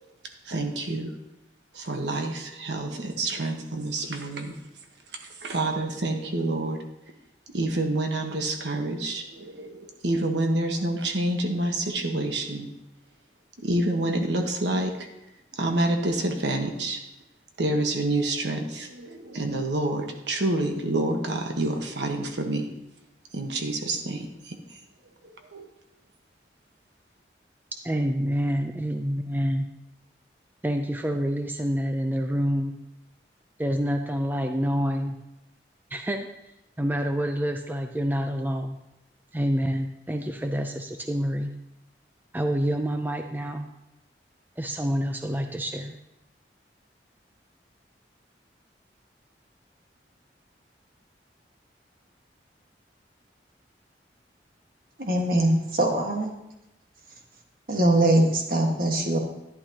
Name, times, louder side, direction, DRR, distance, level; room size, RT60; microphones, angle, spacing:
voice 1, 0.4-1.1 1.7-4.5 5.2-6.8 7.5-12.7 13.6-15.1 15.6-17.0 17.6-22.7 23.3-24.6 25.5-25.7, right 2 dB, 80° right, 4 dB, 1.2 m, -28 dB
voice 2, 27.8-29.7 30.6-32.8 33.6-35.2 35.9-36.3 36.8-38.8 39.3-41.5 42.3-43.7 44.6-46.0, equal, 10° right, 5 dB, 0.4 m, -27 dB
voice 3, 55.0-56.3 57.7-59.2, right 1 dB, 50° right, 1 dB, 1.5 m, -22 dB
11.5 x 11.0 x 2.9 m, 0.89 s
head